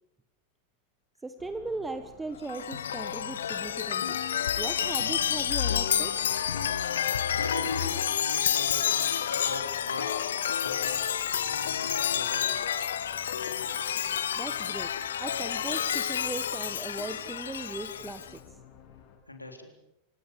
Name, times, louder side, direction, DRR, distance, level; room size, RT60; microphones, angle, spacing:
voice 1, 1.2-4.2 4.6-6.1 14.4-14.9 15.2-18.6, right 3 dB, 10° right, 10 dB, 1.4 m, -38 dB
sound 1, 1.4-19.2, left 8 dB, 40° left, 4.5 m, -54 dB
Chime, 2.4-18.3, left 9 dB, 65° left, 1.2 m, -29 dB
voice 2, 7.3-11.1 11.4-12.7 19.3-19.7, left 2 dB, 85° left, 5 dB, 3.8 m, -40 dB
28.0 x 17.5 x 7.0 m, 0.89 s
figure-of-eight pair, 90°, 0 cm